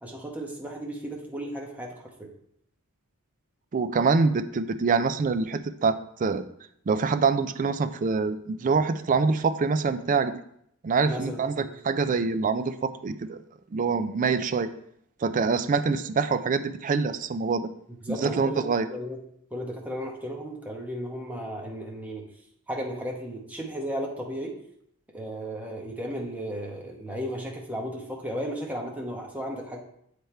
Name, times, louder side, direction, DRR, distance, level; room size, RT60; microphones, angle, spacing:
voice 1, 0.0-2.3 11.0-11.7 18.0-19.2 19.5-22.2 22.7-24.5 25.1-29.8, equal, 5° right, -1 dB, 1.1 m, -34 dB
voice 2, 3.7-6.4 6.9-10.4 10.8-13.4 13.7-14.7 15.2-17.7 18.1-18.9, right 4 dB, 35° right, 11 dB, 0.4 m, -25 dB
7.8 x 3.4 x 4.4 m, 0.70 s
head